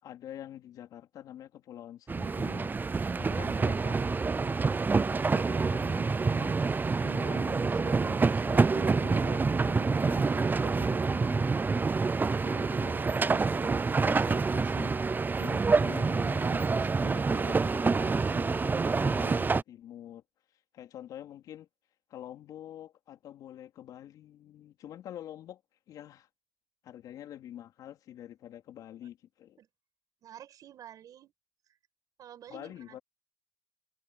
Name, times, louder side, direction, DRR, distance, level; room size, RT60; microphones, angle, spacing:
voice 1, 0.0-12.2 12.4-20.2 20.7-21.7 22.1-25.6 25.9-26.3 26.8-29.6 32.5-33.0, left 11 dB, 80° left, 3.6 m, -47 dB
sound 1, 2.1-19.6, right 4 dB, 30° right, 0.5 m, -27 dB
voice 2, 30.2-31.3 32.2-33.0, right 10 dB, 75° right, 7.0 m, -50 dB
supercardioid pair, 60°, 6 cm